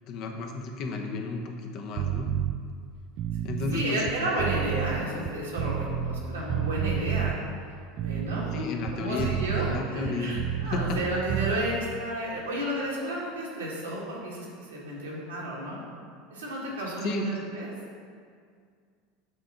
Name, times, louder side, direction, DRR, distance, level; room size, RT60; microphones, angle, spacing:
voice 1, 0.1-2.3 3.4-4.0 8.5-10.4 10.7-11.0 17.0-17.3, left 3 dB, 55° left, 3 dB, 0.9 m, -32 dB
sound 1, 2.0-2.6 3.1-6.2 6.5-7.4 7.9-11.0 11.3-11.6, right 10 dB, 50° right, 0.3 m, -30 dB
voice 2, 3.7-7.3 8.0-8.5 8.9-15.8 16.3-17.7, right 1 dB, 80° right, -5 dB, 1.8 m, -32 dB
7.4 x 3.8 x 5.7 m, 2.1 s
figure-of-eight pair, 75°, 0 cm